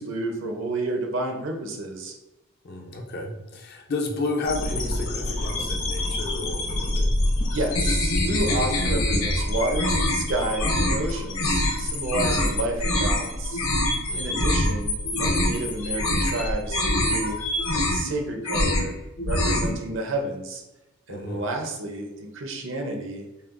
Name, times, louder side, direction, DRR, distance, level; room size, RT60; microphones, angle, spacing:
voice 1, 0.0-2.2 7.4-13.7 14.1-17.4 17.7-18.9 19.3-20.6 21.1-23.3, right 2 dB, 55° right, 3 dB, 0.6 m, -30 dB
voice 2, 2.6-7.2 12.4-12.5 14.1-14.3 21.1-21.4, left 2 dB, 45° left, 2 dB, 0.5 m, -32 dB
sound 1, 4.4-17.8, left 1 dB, 65° left, 1.3 m, -29 dB
sound 2, 7.7-9.4 9.7-10.2 10.6-11.0 11.3-11.7 12.1-12.5 12.8-13.2 13.5-14.0 14.3-14.7 15.0-15.6 15.9-16.4 16.7-17.2 17.5-18.1 18.4-18.9 19.2-19.7, left 1 dB, 80° left, 0.7 m, -24 dB
5.4 x 2.3 x 2.5 m, 1.0 s
head